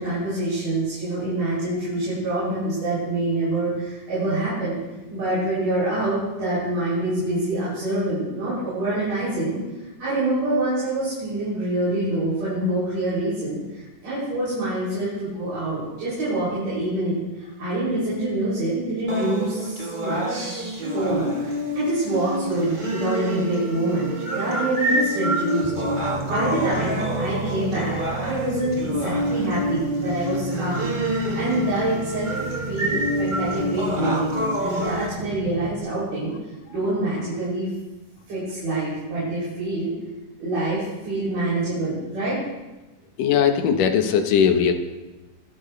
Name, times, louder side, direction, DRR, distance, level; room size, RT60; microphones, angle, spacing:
voice 1, 0.0-4.8 5.1-9.6 10.0-25.7 26.0-30.9 31.3-32.3 32.7-34.3 34.6-36.3 36.7-37.7 38.3-39.9 40.4-42.4, right 1 dB, 85° right, -11 dB, 8.5 m, -26 dB
sound 1, 19.1-35.1, right 1 dB, 45° right, 0.6 m, -27 dB
sound 2, 25.6-35.8, right 3 dB, 5° right, 1.5 m, -35 dB
voice 2, 43.2-44.7, left 7 dB, 85° left, 6 dB, 2.8 m, -19 dB
25.5 x 11.5 x 3.3 m, 1.1 s
omnidirectional pair, 3.7 m